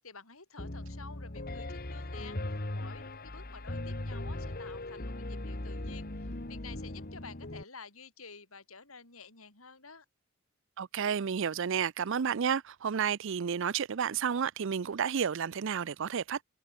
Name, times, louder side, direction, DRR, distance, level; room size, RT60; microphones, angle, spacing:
voice 1, 0.0-10.1, left 5 dB, 90° left, 7.1 m, -51 dB
Piano, 0.6-7.6, left 1 dB, 45° left, 1.7 m, -39 dB
voice 2, 10.8-16.4, right 7 dB, 65° right, 0.5 m, -31 dB
head